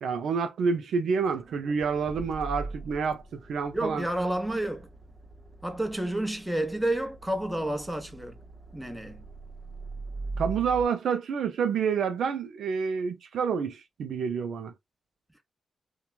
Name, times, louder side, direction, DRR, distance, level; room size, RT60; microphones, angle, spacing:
voice 1, 0.0-3.2 3.5-4.0 10.4-14.7, right 6 dB, 70° right, 0.4 m, -28 dB
Accelerating revving vroom, 1.3-10.9, right 3 dB, 40° right, 0.7 m, -42 dB
voice 2, 3.7-4.9 5.6-8.4 8.7-9.2, right 1 dB, 10° right, 0.9 m, -30 dB
2.9 x 2.2 x 2.3 m
hypercardioid pair, 40°, 0 cm